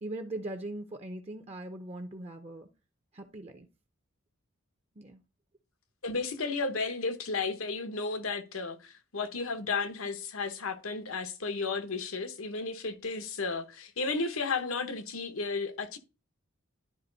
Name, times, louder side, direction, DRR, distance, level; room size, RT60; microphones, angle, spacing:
voice 1, 0.0-2.7 3.1-3.7 5.0-5.2, right 1 dB, 30° right, 0.6 m, -40 dB
voice 2, 6.0-16.0, left 4 dB, 85° left, 1.1 m, -33 dB
11.5 x 3.9 x 4.0 m
head